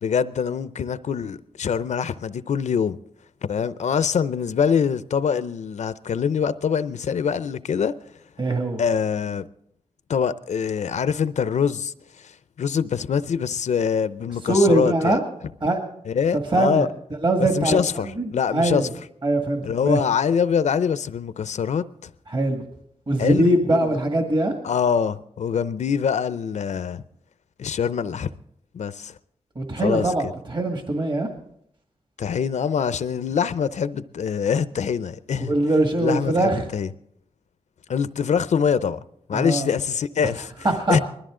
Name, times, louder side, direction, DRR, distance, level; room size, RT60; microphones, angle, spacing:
voice 1, 0.0-3.0 3.4-7.9 8.8-9.5 10.1-11.9 12.2-12.3 12.6-15.2 16.1-16.9 17.4-18.9 19.6-22.1 23.2-23.9 24.6-27.0 27.6-28.3 28.7-29.1 29.8-30.1 32.2-35.5 36.0-36.9 37.9-39.0 39.3-40.5 40.9-41.0, left 7 dB, 70° left, 0.5 m, -24 dB
voice 2, 8.4-8.8 14.5-15.2 15.6-15.8 16.5-16.9 17.2-18.9 19.2-20.0 22.3-22.6 23.1-24.5 29.6-31.3 35.4-36.6 39.3-39.7 40.6-41.0, right 2 dB, 40° right, 1.9 m, -22 dB
20.5 x 13.0 x 3.8 m
wide cardioid pair, 85°, 12 cm